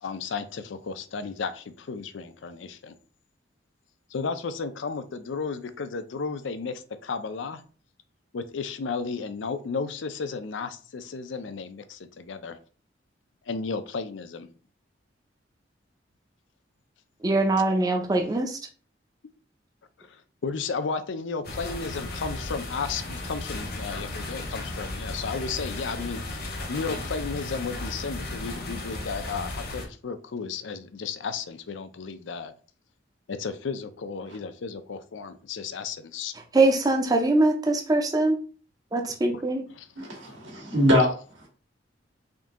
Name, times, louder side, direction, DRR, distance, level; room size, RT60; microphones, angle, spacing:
voice 1, 0.0-2.9 4.1-7.6 8.3-12.6 13.5-14.5 20.0-20.2 20.4-32.5 33.3-36.3 39.1-39.4 39.7-39.9 40.3-40.4, left 5 dB, 80° left, 0.5 m, -33 dB
voice 2, 17.2-18.6 36.5-38.4 38.9-39.6, right 2 dB, 20° right, 0.5 m, -22 dB
sound 1, 21.4-29.9, left 2 dB, 55° left, 0.9 m, -35 dB
voice 3, 40.0-41.1, left 1 dB, 85° right, 1.7 m, -22 dB
3.7 x 2.7 x 3.6 m
head